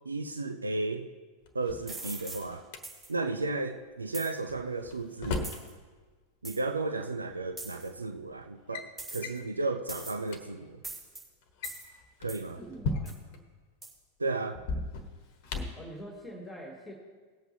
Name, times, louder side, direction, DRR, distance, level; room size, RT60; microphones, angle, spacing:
voice 1, 0.1-1.1 1.5-2.6 3.1-5.5 6.4-10.8 12.2-12.6 14.2-14.6, right 3 dB, 80° right, 7 dB, 0.5 m, -34 dB
Drawer open or close, 1.5-2.8 4.5-5.7 6.9-7.0 7.9-8.1 8.4-8.9 9.2-9.5 10.0-10.1 10.2-10.4 11.4-13.4 14.5-15.9, left 3 dB, 45° left, 1.2 m, -37 dB
sound 1, 1.9-2.4 2.8-3.1 4.1-4.3 5.4-5.7 6.4-6.6 7.6-7.9 9.0-9.4 9.9-10.3 10.8-11.2 11.6-11.8 12.3-12.5 13.1-13.2 13.8-13.9, right 2 dB, 20° right, 3.2 m, -41 dB
voice 2, 12.6-13.1 15.7-16.9, equal, 10° left, 0 dB, 2.0 m, -44 dB
19.0 x 8.1 x 2.9 m, 1.4 s
figure-of-eight pair, 90°, 0 cm